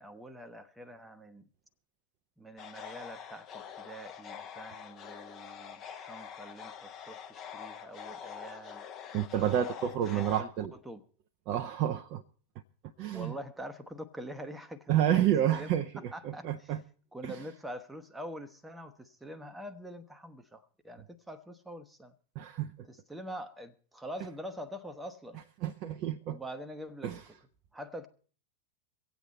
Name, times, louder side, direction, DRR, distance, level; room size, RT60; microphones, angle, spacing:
voice 1, 0.0-1.5 2.4-8.8 10.0-11.0 13.1-15.7 16.0-16.7 17.1-22.1 22.9-25.4 26.3-27.1 27.7-28.1, equal, 5° right, 1.0 m, -45 dB
sound 1, 2.6-10.4, left 8 dB, 30° left, 1.1 m, -45 dB
voice 2, 9.1-10.7 11.5-12.2 13.0-13.3 14.9-16.8 17.2-17.4 22.4-22.7 25.6-26.4 27.0-27.2, right 11 dB, 40° right, 0.6 m, -30 dB
24.0 x 8.2 x 4.2 m
figure-of-eight pair, 90°, 0 cm